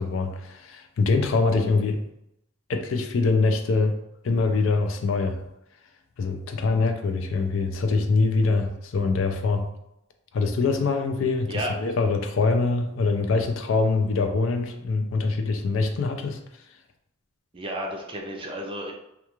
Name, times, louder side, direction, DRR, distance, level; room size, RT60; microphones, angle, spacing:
voice 1, 0.0-2.0 2.7-4.0 4.2-5.4 6.2-9.7 10.3-16.4, left 3 dB, 75° left, 6 dB, 0.4 m, -24 dB
voice 2, 17.5-18.9, right 1 dB, 25° right, 1 dB, 0.5 m, -32 dB
2.3 x 2.3 x 2.9 m, 0.81 s
head